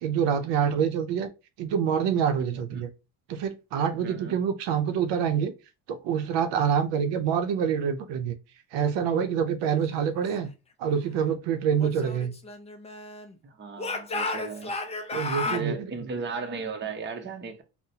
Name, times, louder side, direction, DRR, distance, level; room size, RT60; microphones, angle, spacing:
voice 1, 0.0-1.3 1.6-2.9 3.3-5.5 5.9-8.3 8.7-10.5 10.8-12.3 15.1-15.9, right 7 dB, 80° right, 0.6 m, -26 dB
voice 2, 2.5-2.8 4.0-4.4 13.4-14.7 15.4-17.6, right 4 dB, 25° right, 0.7 m, -36 dB
Speech / Shout, 11.8-13.3 13.8-15.7, left 3 dB, 15° left, 0.4 m, -33 dB
3.8 x 2.1 x 2.7 m
cardioid pair, 110°, 42 cm